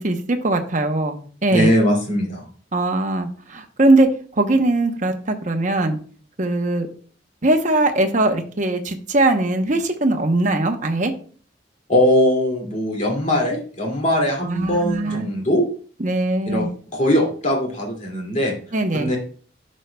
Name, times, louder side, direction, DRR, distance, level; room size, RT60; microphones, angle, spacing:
voice 1, 0.0-1.7 2.7-4.1 4.4-6.0 6.4-6.9 7.4-11.1 14.4-15.3 16.0-16.7 18.7-19.1, right 2 dB, 45° right, 5 dB, 0.9 m, -20 dB
voice 2, 1.5-2.5 11.9-15.7 16.5-18.5 18.9-19.2, left 1 dB, 40° left, -1 dB, 2.4 m, -20 dB
11.0 x 6.3 x 2.3 m, 0.43 s
head